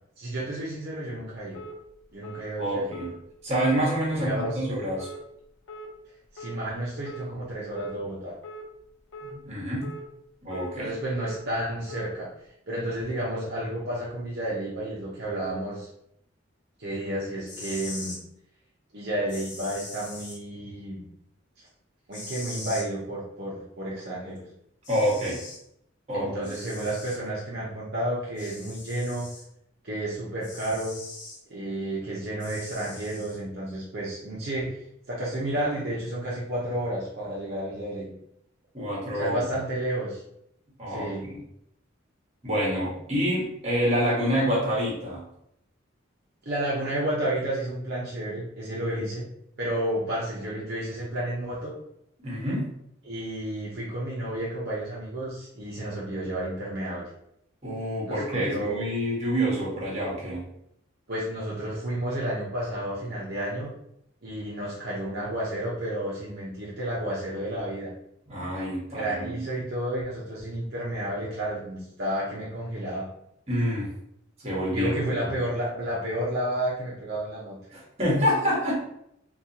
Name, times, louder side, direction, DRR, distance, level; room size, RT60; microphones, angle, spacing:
voice 1, 0.2-1.6 2.1-3.1 4.1-4.6 6.3-8.4 10.8-12.3 12.7-15.9 16.8-18.2 18.9-21.0 22.1-24.4 26.1-29.3 29.8-30.9 31.5-34.8 35.1-38.1 39.1-40.2 40.9-41.3 46.4-49.3 49.6-51.7 53.0-57.1 58.0-58.8 61.1-63.7 64.2-67.9 68.9-73.1 74.7-77.6, right 1 dB, 55° right, -6 dB, 0.8 m, -31 dB
sound 1, 1.5-1.7 2.2-2.4 2.9-3.1 3.6-3.8 4.3-4.5 5.0-5.2 5.7-5.9 6.4-6.6 7.0-7.3 7.7-8.0 8.4-8.6 9.1-9.3 9.8-10.0 10.5-10.7 11.2-11.4 11.9-12.1, right 1 dB, 70° left, 0.7 m, -41 dB
voice 2, 2.6-3.1 3.4-5.1 9.2-9.9 10.4-10.9 24.9-25.4 26.1-26.5 38.7-39.4 40.8-41.4 42.4-45.2 52.2-52.7 57.6-60.5 68.3-69.4 73.5-73.9 74.4-74.9 75.2-75.4 77.7-78.8, equal, 30° right, -4 dB, 1.2 m, -27 dB
sound 2, 17.5-18.2 19.3-20.4 22.1-22.9 24.4-24.5 24.8-25.6 26.4-27.2 28.4-29.4 30.4-31.4 32.4-33.4, left 2 dB, 40° left, 1.0 m, -41 dB
4.0 x 2.4 x 2.9 m, 0.75 s
head